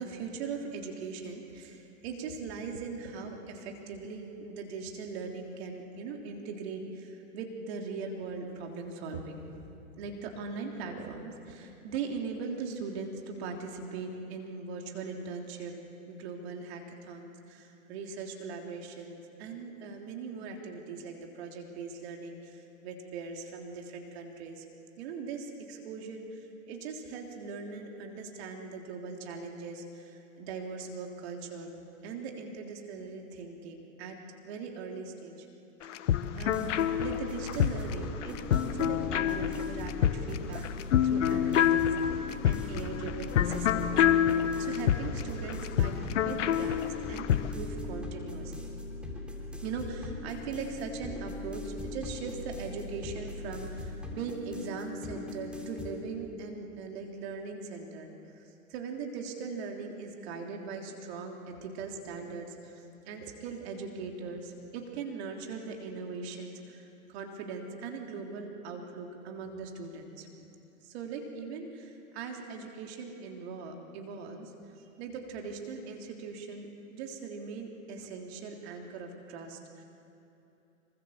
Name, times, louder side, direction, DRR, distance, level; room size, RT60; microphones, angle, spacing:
voice 1, 0.0-9.6 9.9-15.7 16.1-24.6 25.0-34.2 34.4-35.5 35.8-36.7 37.0-40.7 41.0-46.8 47.1-48.8 49.6-70.3 70.8-74.5 75.0-76.7 76.9-79.8, right 4 dB, 50° right, 2 dB, 3.4 m, -40 dB
sound 1, 35.8-47.5, left 10 dB, 60° left, 1.3 m, -27 dB
sound 2, 36.4-55.9, left 2 dB, ahead, 3.5 m, -40 dB
25.5 x 23.5 x 7.4 m, 2.8 s
hypercardioid pair, 115°, 41 cm